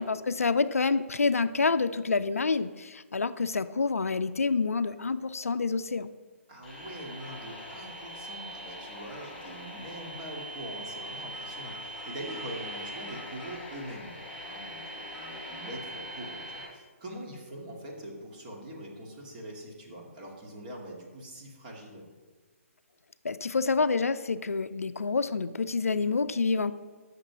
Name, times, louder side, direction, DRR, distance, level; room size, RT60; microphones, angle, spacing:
voice 1, 0.0-6.1 23.2-26.7, left 4 dB, 75° left, 13 dB, 0.5 m, -27 dB
voice 2, 6.5-14.1 14.5-22.0, right 1 dB, 35° right, -1 dB, 2.2 m, -43 dB
sound 1, 6.6-16.6, equal, 5° left, 3.3 m, -41 dB
8.6 x 6.5 x 6.2 m, 1.4 s
figure-of-eight pair, 140°, 8 cm